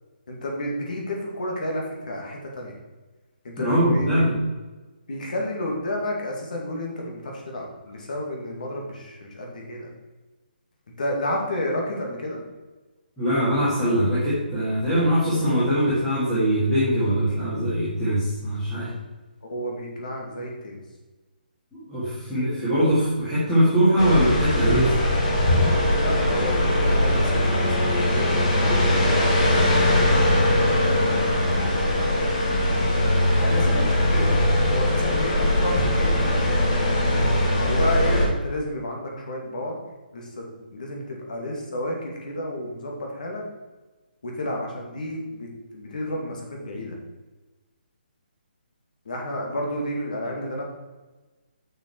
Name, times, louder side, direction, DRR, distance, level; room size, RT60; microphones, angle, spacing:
voice 1, 0.3-2.8 3.4-4.2 5.1-9.9 11.0-12.4 19.5-20.8 26.0-32.1 33.4-36.8 37.7-39.8 40.1-40.5 40.7-43.4 44.2-47.0 49.1-50.6, left 1 dB, 50° left, 0 dB, 2.2 m, -31 dB
voice 2, 3.6-4.4 13.2-18.9 21.7-24.9, equal, 5° left, -13 dB, 1.8 m, -22 dB
sound 1, 24.0-38.3, left 1 dB, 30° left, 1.7 m, -21 dB
6.7 x 6.1 x 4.5 m, 1.2 s
hypercardioid pair, 175°, 5 cm